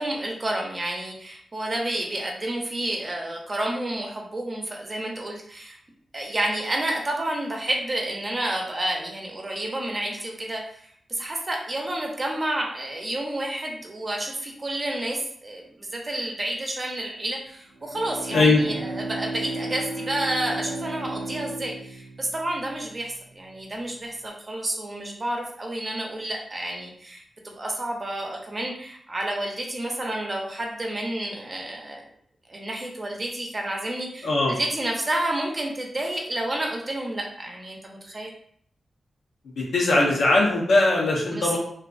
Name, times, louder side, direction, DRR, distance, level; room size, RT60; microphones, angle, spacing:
voice 1, 0.0-5.8 6.1-32.1 32.5-38.3 41.3-41.6, right 1 dB, 35° right, 0 dB, 0.6 m, -30 dB
Bowed string instrument, 17.7-23.3, right 2 dB, 90° right, 0.4 m, -34 dB
voice 2, 18.3-18.6 34.2-34.6 39.6-41.6, left 2 dB, 85° left, -2 dB, 0.7 m, -20 dB
2.4 x 2.4 x 2.4 m, 0.64 s
cardioid pair, 65°, 0 cm